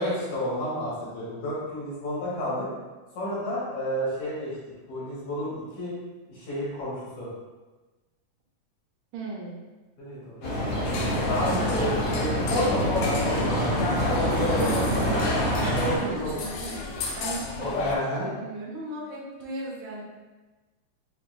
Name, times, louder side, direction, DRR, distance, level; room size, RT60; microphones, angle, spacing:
voice 1, 0.0-2.7 3.1-4.6 4.9-5.9 6.3-7.3 10.0-10.8 11.2-13.6 14.1-15.1 15.8-16.3 17.6-18.3, left 1 dB, 70° left, -8 dB, 2.5 m, -30 dB
voice 2, 9.1-9.6 10.5-10.9 14.6-15.0 15.6-20.0, right 2 dB, 75° right, -3 dB, 1.8 m, -37 dB
sound 1, 10.4-16.0, equal, 50° left, 1.8 m, -26 dB
sound 2, 10.8-18.0, left 3 dB, 90° left, 1.4 m, -33 dB
6.2 x 2.4 x 2.3 m, 1.2 s
omnidirectional pair, 3.6 m